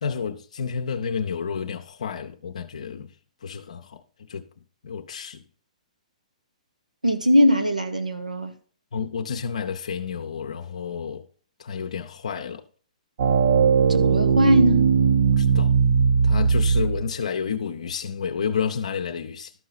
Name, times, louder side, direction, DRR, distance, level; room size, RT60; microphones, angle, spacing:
voice 1, 0.0-3.1 3.4-4.5 4.8-5.4 8.9-11.3 11.6-12.6 15.4-15.8 16.2-19.5, left 6 dB, 65° left, 0.7 m, -30 dB
voice 2, 7.0-8.6 13.9-14.9, equal, 90° right, 1.2 m, -20 dB
sound 1, 13.2-17.1, right 6 dB, 55° right, 0.5 m, -19 dB
12.5 x 5.5 x 4.1 m
figure-of-eight pair, 120°, 4 cm